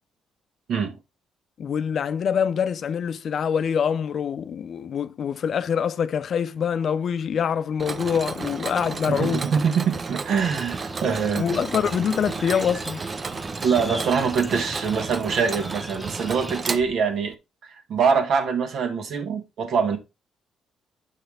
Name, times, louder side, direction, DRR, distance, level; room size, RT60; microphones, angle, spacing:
voice 1, 1.6-9.5 11.3-13.0, left 7 dB, 60° left, 0.6 m, -25 dB
Mechanisms, 7.8-17.3, right 4 dB, 40° right, 0.7 m, -33 dB
voice 2, 9.1-11.4 13.6-17.3 17.9-20.0, right 6 dB, 70° right, 1.8 m, -24 dB
sound 1, 10.4-16.6, right 1 dB, 10° right, 1.3 m, -38 dB
8.1 x 5.7 x 3.4 m
cardioid pair, 90°, 0 cm